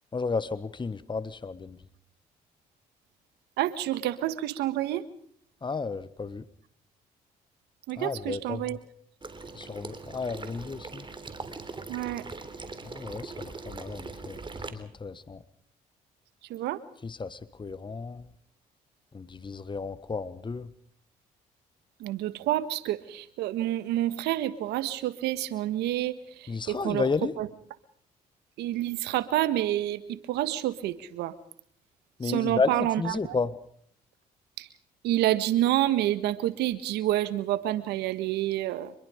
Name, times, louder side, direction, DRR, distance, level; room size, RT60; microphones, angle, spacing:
voice 1, 0.1-1.8 5.6-6.4 8.0-8.6 9.5-11.0 12.8-14.4 14.7-15.4 17.0-18.3 19.1-20.7 26.5-27.3 32.2-33.5, left 4 dB, 30° left, 15 dB, 1.5 m, -32 dB
voice 2, 3.6-5.0 7.9-8.8 11.9-12.2 16.5-16.8 22.0-27.1 27.4-27.5 28.6-31.4 32.2-33.3 34.6-34.7 35.0-38.9, right 14 dB, 80° right, 14 dB, 1.5 m, -28 dB
Water / Liquid, 9.2-14.7, right 3 dB, 30° right, 3.6 m, -41 dB
26.0 x 22.0 x 5.1 m, 0.65 s
supercardioid pair, 60°, 17 cm